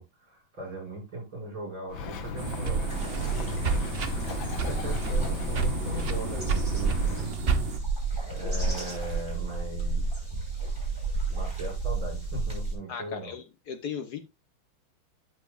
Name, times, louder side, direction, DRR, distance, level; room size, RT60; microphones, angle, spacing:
voice 1, 0.0-2.8 3.1-3.7 4.6-7.3 8.3-10.2 11.3-13.4, right 1 dB, 85° right, 6.9 m, -39 dB
Bird, 1.9-7.3, left 4 dB, 75° left, 1.9 m, -37 dB
sound 1, 2.4-7.8, right 4 dB, 45° right, 0.8 m, -31 dB
sound 2, 2.9-12.7, right 4 dB, 15° right, 4.7 m, -31 dB
voice 2, 12.9-14.2, left 7 dB, 60° left, 1.3 m, -36 dB
11.5 x 7.3 x 2.5 m
omnidirectional pair, 2.2 m